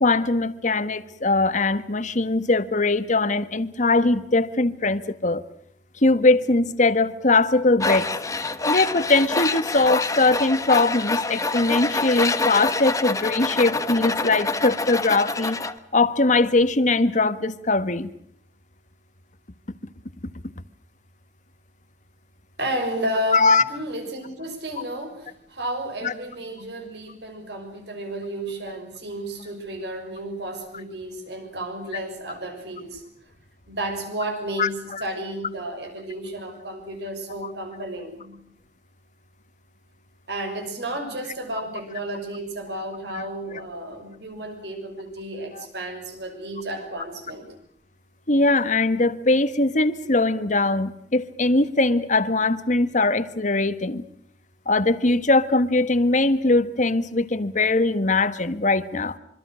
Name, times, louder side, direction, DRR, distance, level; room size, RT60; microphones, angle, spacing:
voice 1, 0.0-5.4 6.0-8.1 8.6-15.6 15.9-18.1 23.3-23.6 26.0-26.1 34.6-35.0 43.1-43.2 45.6-45.7 48.3-54.0 54.7-59.2, left 2 dB, 45° left, 12 dB, 1.5 m, -21 dB
Tools, 7.8-15.7, left 3 dB, 20° left, 1.2 m, -26 dB
voice 2, 22.6-33.0 33.7-38.4 40.3-47.5, right 1 dB, 70° right, 6 dB, 6.3 m, -32 dB
26.0 x 25.0 x 6.4 m, 0.66 s
head